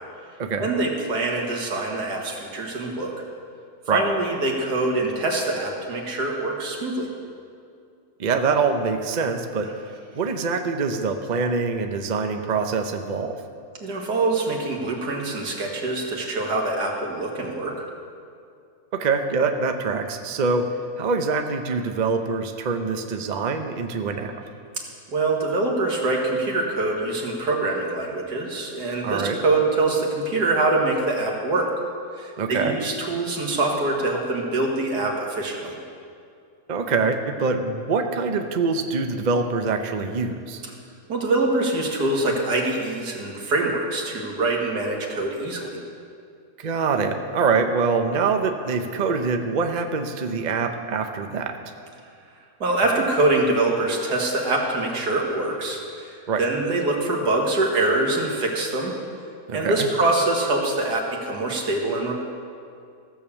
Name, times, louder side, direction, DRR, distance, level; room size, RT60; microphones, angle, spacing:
voice 1, 0.6-3.1 3.9-7.1 13.8-17.9 25.1-31.7 32.2-35.8 41.1-45.8 52.6-58.9 59.5-62.1, right 2 dB, 80° right, 0 dB, 2.2 m, -24 dB
voice 2, 8.2-9.7 10.1-13.4 18.9-20.7 21.0-24.4 29.0-29.4 32.4-32.7 36.7-40.6 46.6-51.6 56.3-56.4 59.5-59.9, right 4 dB, 45° right, 6 dB, 0.6 m, -24 dB
15.0 x 7.0 x 7.1 m, 2.4 s
omnidirectional pair, 1.7 m